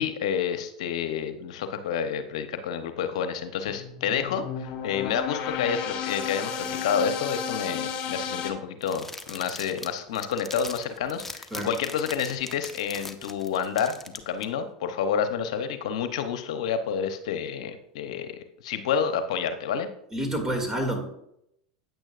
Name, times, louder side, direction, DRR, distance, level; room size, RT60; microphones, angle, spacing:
voice 1, 0.0-14.0 14.3-19.9, left 7 dB, 70° left, 8 dB, 0.8 m, -29 dB
sound 1, 3.7-8.5, left 7 dB, 45° left, 1.8 m, -33 dB
sound 2, 8.8-14.4, left 2 dB, 10° left, 0.8 m, -41 dB
voice 2, 20.1-21.1, right 1 dB, 15° right, 4 dB, 2.4 m, -28 dB
9.1 x 8.9 x 2.5 m, 0.76 s
hypercardioid pair, 95°, 3 cm